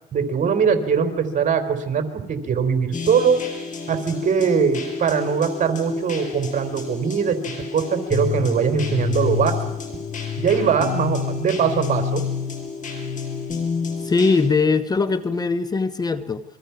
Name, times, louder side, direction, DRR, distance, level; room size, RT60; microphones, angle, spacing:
voice 1, 0.1-3.4 3.9-9.6 10.4-12.2, right 6 dB, 50° right, 7 dB, 3.7 m, -21 dB
sound 1, 2.9-14.5, left 6 dB, 50° left, 5.8 m, -29 dB
voice 2, 14.0-16.4, left 4 dB, 25° left, 12 dB, 1.0 m, -21 dB
28.5 x 23.0 x 5.9 m, 1.0 s
cardioid pair, 110°, 17 cm